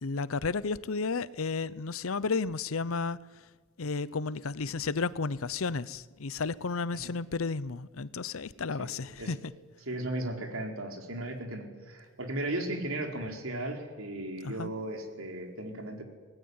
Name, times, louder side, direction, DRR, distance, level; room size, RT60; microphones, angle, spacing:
voice 1, 0.0-3.2 3.8-9.4 14.4-14.7, left 4 dB, 85° left, 0.7 m, -32 dB
voice 2, 8.8-9.3 9.8-16.0, right 1 dB, 80° right, 4.4 m, -36 dB
26.0 x 20.0 x 9.5 m
head